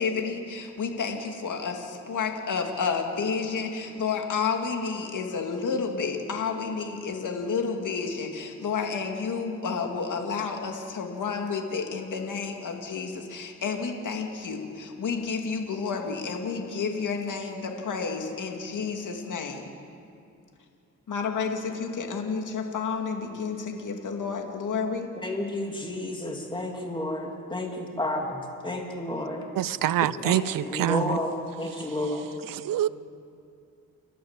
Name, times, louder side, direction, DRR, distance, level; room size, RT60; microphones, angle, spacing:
voice 1, 0.0-19.7 21.1-25.1, left 5 dB, 70° left, 3 dB, 2.4 m, -30 dB
voice 2, 25.2-29.4 30.2-32.4, left 1 dB, 15° left, 1 dB, 2.7 m, -31 dB
voice 3, 29.6-31.0 32.7-32.9, right 12 dB, 85° right, 18 dB, 0.6 m, -25 dB
29.5 x 13.5 x 7.4 m, 2.5 s
cardioid pair, 90°, 32 cm